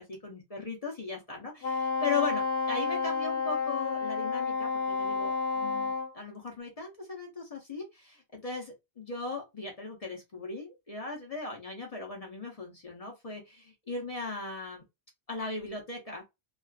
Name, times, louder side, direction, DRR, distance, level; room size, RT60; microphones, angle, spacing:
voice 1, 0.0-14.8 15.3-16.2, left 4 dB, 40° left, 0.7 m, -38 dB
Wind instrument woodwind instrument, 1.6-6.1, left 4 dB, 75° left, 0.9 m, -30 dB
2.4 x 2.3 x 2.3 m
omnidirectional pair, 1.1 m